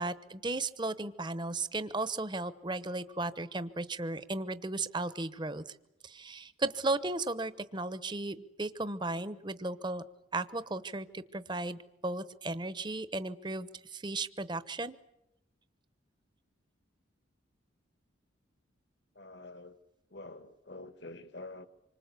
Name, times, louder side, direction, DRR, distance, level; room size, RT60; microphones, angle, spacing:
voice 1, 0.0-5.7 6.0-10.0 10.3-15.0, right 2 dB, 20° right, 1.0 m, -35 dB
voice 2, 19.1-19.8 20.1-21.7, left 2 dB, 55° left, 1.5 m, -47 dB
27.0 x 24.5 x 8.3 m
head